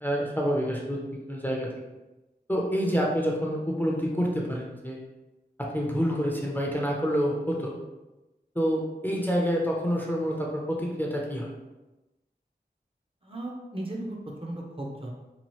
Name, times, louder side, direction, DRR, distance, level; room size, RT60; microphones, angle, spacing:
voice 1, 0.0-1.0 1.3-1.7 2.5-5.0 5.6-7.8 8.6-11.6, equal, 10° left, -2 dB, 0.5 m, -27 dB
voice 2, 13.2-15.1, right 1 dB, 30° right, -2 dB, 0.6 m, -36 dB
2.9 x 2.3 x 3.0 m, 1.0 s
wide cardioid pair, 45°, 18 cm